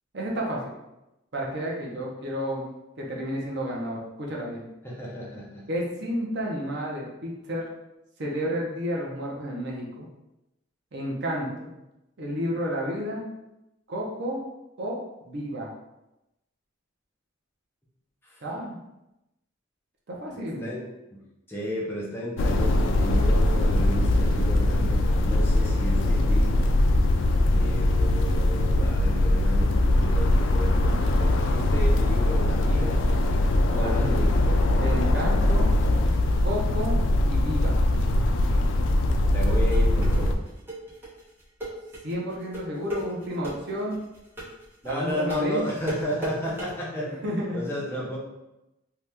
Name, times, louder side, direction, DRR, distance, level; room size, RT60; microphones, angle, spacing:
voice 1, 0.1-0.7 1.3-2.7 3.0-4.6 5.7-7.6 8.2-10.1 10.9-11.7 12.2-13.2 13.9-14.4 14.8-15.0 15.2-15.7 18.4-18.8 20.1-20.7 33.7-34.1 34.8-35.7 36.4-37.0 37.2-37.8 42.0-44.0 44.8-45.6 47.0-47.6, equal, 60° right, -2 dB, 0.7 m, -31 dB
voice 2, 4.8-5.6 18.2-18.4 20.4-20.8 21.1-21.2 21.5-26.7 27.5-33.0 33.7-34.6 39.3-40.4 44.8-47.1 47.5-48.2, equal, 10° left, -5 dB, 0.6 m, -33 dB
sound 1, 22.4-40.4, left 1 dB, 65° left, 0.3 m, -22 dB
sound 2, 39.2-46.7, right 2 dB, 10° right, 0.9 m, -36 dB
2.8 x 2.3 x 3.3 m, 0.93 s
head